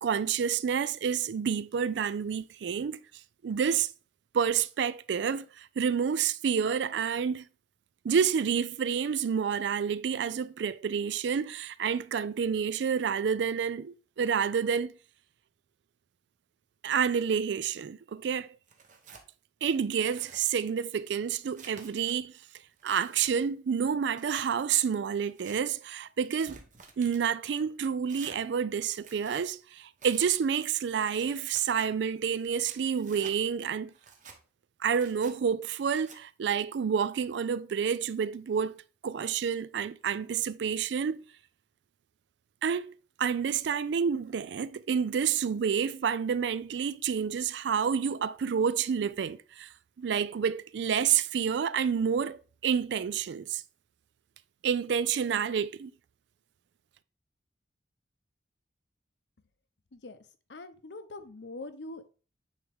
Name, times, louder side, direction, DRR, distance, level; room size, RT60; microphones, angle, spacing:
voice 1, 0.0-3.0 3.4-3.9 4.3-7.5 8.0-14.9 16.8-18.5 19.6-22.3 22.8-26.6 27.0-33.9 34.8-38.8 39.0-41.3 42.6-42.9 43.2-49.7 50.0-53.6 54.6-55.9, right 7 dB, 70° right, 0.4 m, -29 dB
Tearing, 18.7-19.3 19.8-20.4 21.0-22.1 22.6-23.3 24.1-24.5 25.2-25.6 26.2-27.2 28.1-28.4 29.0-29.4 30.0-30.3 31.0-31.6 32.3-33.4 33.9-34.4 34.9-35.3 35.9-36.2, right 5 dB, 45° right, 1.0 m, -51 dB
voice 2, 60.5-62.1, left 2 dB, 70° left, 0.7 m, -43 dB
9.2 x 3.6 x 3.4 m
head